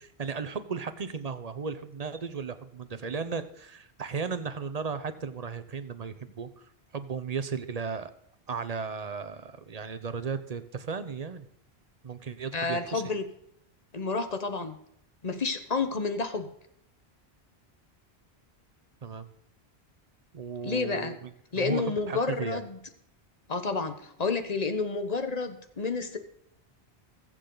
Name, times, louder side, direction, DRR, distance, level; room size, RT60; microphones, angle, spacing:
voice 1, 0.0-6.5 6.9-8.1 8.5-11.5 12.0-13.0 19.0-19.3 20.3-21.3 21.6-22.6, right 5 dB, 40° right, 11 dB, 0.8 m, -35 dB
voice 2, 12.5-13.2 13.9-14.8 15.2-16.5 20.6-21.1 21.5-22.8 23.5-26.2, left 4 dB, 40° left, 8 dB, 1.1 m, -30 dB
21.5 x 7.6 x 3.9 m, 0.75 s
omnidirectional pair, 1.1 m